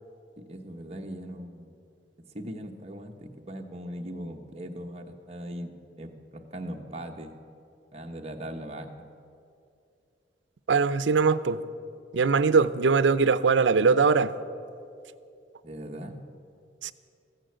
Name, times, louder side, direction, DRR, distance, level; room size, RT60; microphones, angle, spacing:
voice 1, 0.5-1.8 2.2-7.4 7.9-9.1 15.6-16.2, equal, 35° right, 3 dB, 1.1 m, -39 dB
voice 2, 10.7-11.6 12.1-14.3 16.8-16.9, right 5 dB, 90° right, 15 dB, 0.5 m, -21 dB
15.0 x 10.0 x 7.9 m, 2.5 s
head